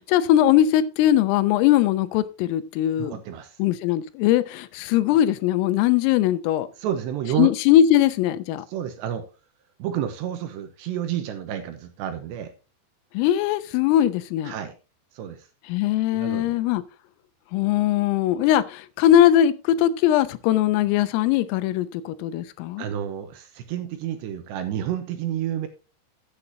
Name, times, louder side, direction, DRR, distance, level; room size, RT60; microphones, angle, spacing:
voice 1, 0.0-3.2 3.6-6.7 7.4-8.7 13.1-14.5 15.7-16.8 17.5-22.8, left 11 dB, 85° left, 3.4 m, -20 dB
voice 2, 3.0-3.6 6.8-7.5 8.7-9.2 9.8-12.5 14.4-14.7 15.1-15.5 16.1-16.6 22.8-25.7, right 10 dB, 80° right, 2.7 m, -30 dB
14.5 x 8.4 x 2.8 m
omnidirectional pair, 5.8 m